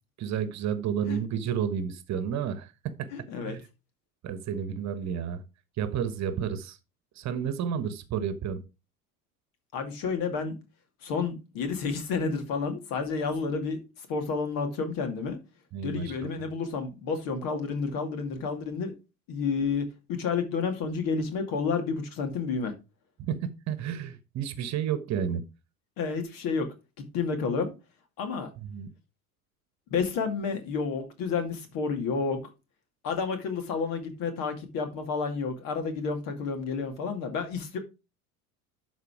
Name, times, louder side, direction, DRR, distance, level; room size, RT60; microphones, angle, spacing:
voice 1, 0.2-3.1 3.4-3.7 4.2-5.4 5.8-6.8 7.1-8.6 15.7-16.3 23.2-25.4 28.6-28.9, right 8 dB, 40° right, 1.2 m, -31 dB
voice 2, 3.1-3.6 9.7-10.6 11.0-15.4 15.8-18.9 19.3-22.7 26.0-26.7 27.1-27.7 28.2-28.5 29.9-32.4 33.0-37.8, left 5 dB, 50° left, 2.4 m, -30 dB
12.0 x 4.2 x 4.7 m
figure-of-eight pair, 75°, 42 cm